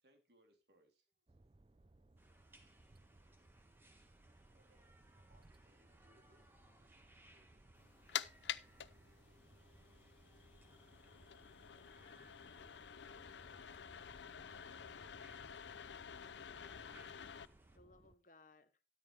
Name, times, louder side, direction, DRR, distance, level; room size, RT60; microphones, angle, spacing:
voice 1, 0.0-1.4 1.8-2.7, right 1 dB, 70° right, 3 dB, 3.3 m, -76 dB
sound 1, 1.3-18.2, right 2 dB, 30° right, 0.5 m, -66 dB
sound 2, 2.2-17.8, right 1 dB, 10° right, 1.6 m, -69 dB
voice 2, 4.5-7.9 11.0-13.4, equal, 45° right, 4 dB, 3.6 m, -76 dB
sound 3, 7.8-17.5, left 9 dB, 90° left, 0.6 m, -49 dB
voice 3, 14.4-15.1 16.2-17.1 17.7-18.8, left 2 dB, 50° left, 11 dB, 1.0 m, -67 dB
13.0 x 11.0 x 3.4 m, 0.34 s
head